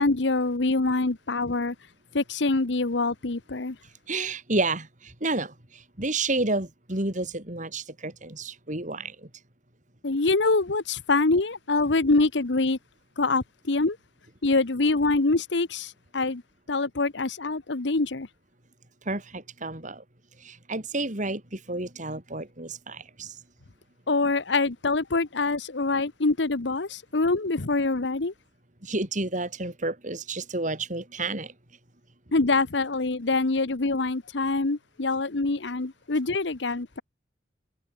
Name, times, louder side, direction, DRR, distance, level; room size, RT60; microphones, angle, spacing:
voice 1, 0.0-1.7 2.1-3.8 10.0-12.8 13.2-14.0 14.4-16.4 16.7-18.3 24.1-28.3 32.3-37.0, left 3 dB, 70° left, 1.1 m, -25 dB
voice 2, 4.1-9.3 19.0-20.0 20.4-23.4 28.8-31.5, right 2 dB, 40° right, 4.0 m, -30 dB
head